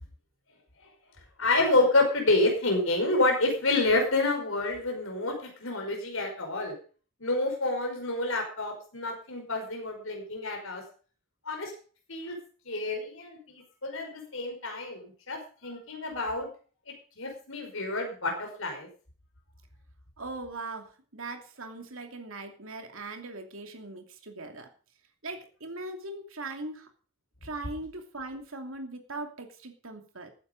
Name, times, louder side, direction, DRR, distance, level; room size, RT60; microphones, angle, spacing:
voice 1, 1.4-6.8 7.2-10.8 11.5-11.7 12.1-12.4 12.7-16.5 16.9-18.9, left 2 dB, 75° left, 3 dB, 5.4 m, -28 dB
voice 2, 20.2-24.7 25.2-26.9 27.4-30.3, right 2 dB, 75° right, 5 dB, 2.7 m, -40 dB
14.5 x 9.8 x 5.3 m, 0.40 s
head